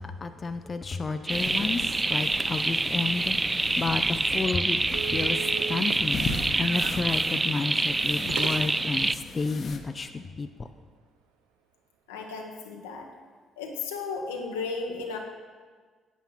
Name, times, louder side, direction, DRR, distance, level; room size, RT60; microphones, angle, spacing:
voice 1, 0.0-5.4 5.7-6.3 6.5-10.7, left 4 dB, 35° left, 8 dB, 0.6 m, -31 dB
sound 1, 1.3-9.8, left 3 dB, 50° left, 1.1 m, -39 dB
sound 2, 1.3-9.1, right 2 dB, 20° right, 0.4 m, -27 dB
sound 3, 4.3-9.0, right 9 dB, 75° right, 0.6 m, -40 dB
voice 2, 12.1-13.1 13.6-15.2, left 4 dB, 85° left, 2 dB, 1.2 m, -34 dB
9.2 x 8.5 x 5.9 m, 1.5 s
hypercardioid pair, 50°, 0 cm